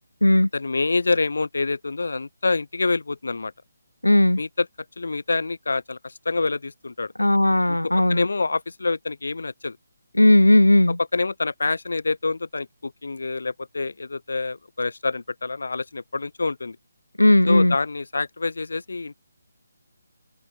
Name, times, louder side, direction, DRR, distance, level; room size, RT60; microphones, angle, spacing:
voice 1, 0.5-3.5 4.4-4.7 5.0-7.1 7.8-9.8 11.1-16.8 17.5-19.2, left 3 dB, 65° left, 7.3 m, -26 dB
voice 2, 4.0-4.4 7.2-8.3 10.1-11.0 17.2-17.8, left 1 dB, 90° left, 6.7 m, -16 dB
open air
figure-of-eight pair, 150°, 0 cm